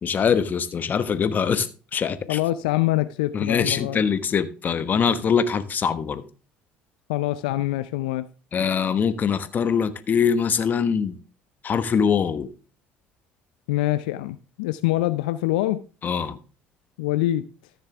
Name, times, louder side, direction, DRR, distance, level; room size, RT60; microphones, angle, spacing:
voice 1, 0.0-2.4 3.3-6.2 8.5-11.2 11.6-12.5 16.0-16.4, left 6 dB, 40° left, 1.1 m, -23 dB
voice 2, 2.3-4.0 7.1-8.3 13.7-15.9 17.0-17.5, left 16 dB, 80° left, 0.4 m, -24 dB
14.0 x 6.7 x 3.5 m
hypercardioid pair, 70°, 4 cm